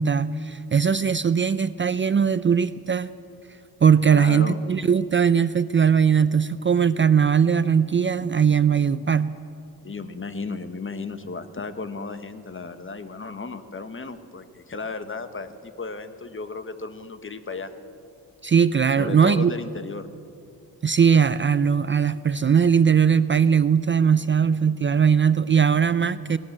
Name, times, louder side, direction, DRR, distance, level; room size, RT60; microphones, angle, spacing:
voice 1, 0.0-3.1 3.8-9.4 18.4-19.5 20.8-26.4, right 7 dB, 30° right, 14 dB, 0.5 m, -20 dB
voice 2, 4.1-4.6 9.8-17.7 19.0-20.1, left 4 dB, 35° left, 10 dB, 1.4 m, -34 dB
19.5 x 18.5 x 7.4 m, 2.5 s
cardioid pair, 95°, 37 cm